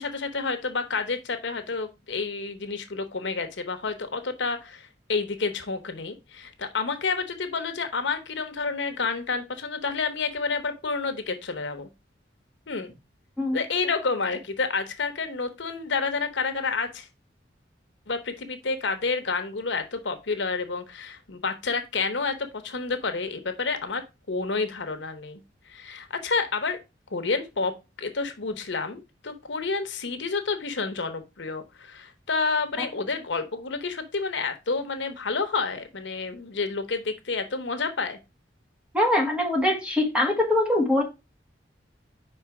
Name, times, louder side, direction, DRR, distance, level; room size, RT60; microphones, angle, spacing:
voice 1, 0.0-11.9 12.7-12.9 13.5-17.1 18.1-24.0 24.3-25.4 25.7-26.8 27.1-27.7 28.0-38.2, left 4 dB, 80° left, 1.0 m, -29 dB
voice 2, 38.9-41.0, left 1 dB, 5° right, 1.4 m, -23 dB
5.1 x 4.4 x 4.7 m
head